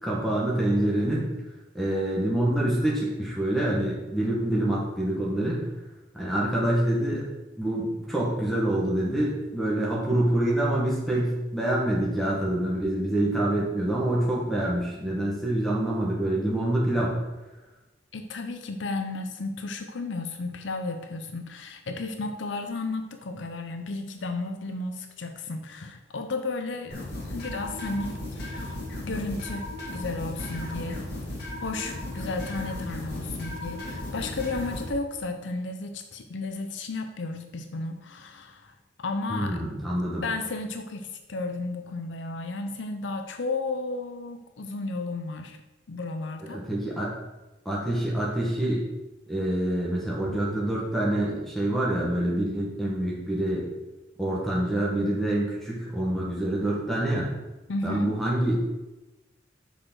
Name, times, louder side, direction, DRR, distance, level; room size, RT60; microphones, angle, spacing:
voice 1, 0.0-1.3 1.7-5.6 6.1-7.3 7.6-17.1 39.3-40.2 46.5-47.1 47.6-48.8 49.3-53.6 54.2-57.3 57.8-58.6, right 1 dB, ahead, -5 dB, 1.5 m, -26 dB
voice 2, 18.1-27.0 27.2-28.8 29.0-29.7 29.9-31.0 31.6-39.6 40.2-45.6 45.9-46.6 57.7-58.2, left 3 dB, 75° left, 6 dB, 0.6 m, -33 dB
sound 1, 26.9-34.9, left 1 dB, 55° left, 2.2 m, -35 dB
6.5 x 4.8 x 6.2 m, 1.1 s
head